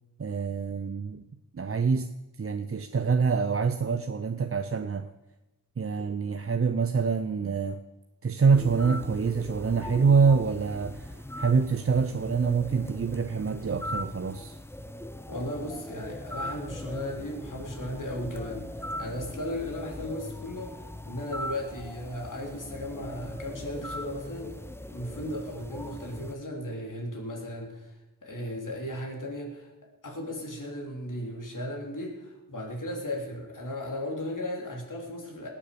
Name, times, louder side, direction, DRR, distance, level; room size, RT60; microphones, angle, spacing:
voice 1, 0.2-1.2 1.5-5.1 5.8-7.8 8.2-14.6, right 5 dB, 40° right, 9 dB, 0.6 m, -26 dB
sound 1, 8.5-26.4, left 1 dB, 5° left, 0.6 m, -40 dB
voice 2, 15.3-24.5 24.9-27.9 28.2-29.7 30.0-35.5, left 1 dB, 55° left, 0 dB, 3.6 m, -36 dB
18.5 x 7.3 x 6.8 m, 1.0 s
wide cardioid pair, 60°, 37 cm